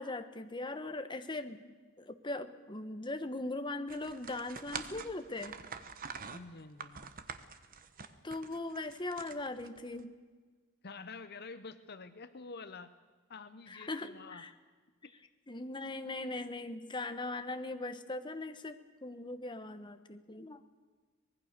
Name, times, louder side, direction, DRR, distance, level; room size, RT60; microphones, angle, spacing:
voice 1, 0.0-5.6 8.2-10.1 13.7-14.5 15.5-20.6, left 2 dB, 20° left, 8 dB, 1.1 m, -40 dB
sound 1, 3.9-10.0, right 6 dB, 40° right, 1.2 m, -46 dB
voice 2, 6.3-7.1 10.8-12.9 13.3-14.5 15.0-15.2, left 4 dB, 50° left, 11 dB, 0.9 m, -48 dB
24.5 x 20.0 x 6.7 m, 1.4 s
head